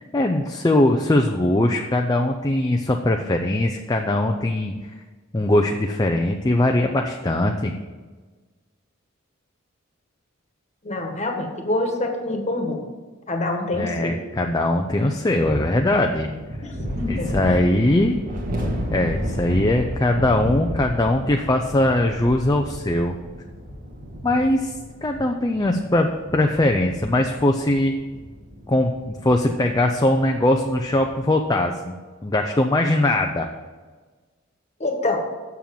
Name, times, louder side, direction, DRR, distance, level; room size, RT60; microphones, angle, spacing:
voice 1, 0.0-4.9 5.3-7.7 13.7-16.3 17.1-18.2 18.9-23.1 24.2-24.8 25.0-27.9 28.7-32.0 32.2-33.5, left 1 dB, 20° left, 3 dB, 0.5 m, -21 dB
voice 2, 10.8-12.8 13.3-14.1 16.6-17.3 34.8-35.2, left 2 dB, 35° left, 3 dB, 1.4 m, -26 dB
sound 1, 15.4-31.2, equal, 45° right, 1.7 m, -32 dB
7.2 x 7.0 x 7.6 m, 1.4 s
head